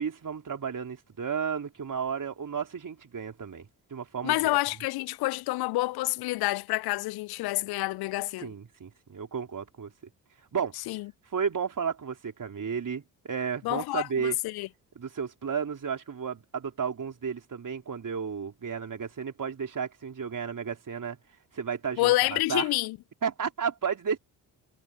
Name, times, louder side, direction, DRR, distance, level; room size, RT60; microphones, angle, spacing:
voice 1, 0.0-3.7 3.9-4.6 8.4-9.9 10.5-10.7 11.3-14.4 15.0-21.2 21.5-22.7 23.2-24.2, right 6 dB, 45° right, 4.4 m, -33 dB
voice 2, 4.2-8.5 10.9-11.1 13.6-14.7 22.0-23.0, left 19 dB, 60° left, 0.6 m, -28 dB
hypercardioid pair, 45°, 44 cm